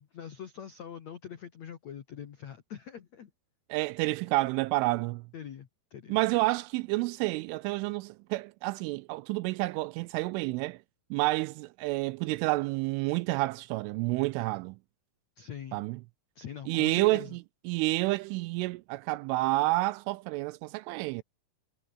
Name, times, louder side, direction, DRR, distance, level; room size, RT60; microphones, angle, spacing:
voice 1, 0.0-3.3 5.3-6.2 15.3-15.8 16.3-17.4, left 8 dB, 80° left, 1.5 m, -44 dB
voice 2, 3.7-5.2 6.1-10.8 11.1-14.8 15.7-16.0 16.7-17.4 17.7-21.2, right 21 dB, 85° right, 2.9 m, -29 dB
omnidirectional pair, 6.0 m